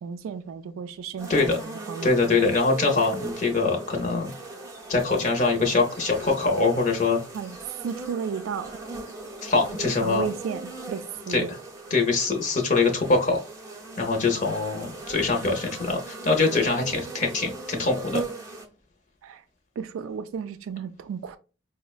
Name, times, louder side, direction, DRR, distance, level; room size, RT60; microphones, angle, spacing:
voice 1, 0.0-2.4 5.6-5.7 7.3-7.6 7.8-8.8 10.0-11.6 19.2-19.4 19.8-21.4, right 6 dB, 80° right, 0.3 m, -34 dB
sound 1, 1.2-18.7, right 2 dB, 15° right, 0.5 m, -39 dB
voice 2, 2.0-4.3 4.9-7.2 9.4-10.2 11.3-11.4 11.9-13.4 14.0-18.2, left 3 dB, 35° left, 0.6 m, -23 dB
5.0 x 2.1 x 2.3 m
head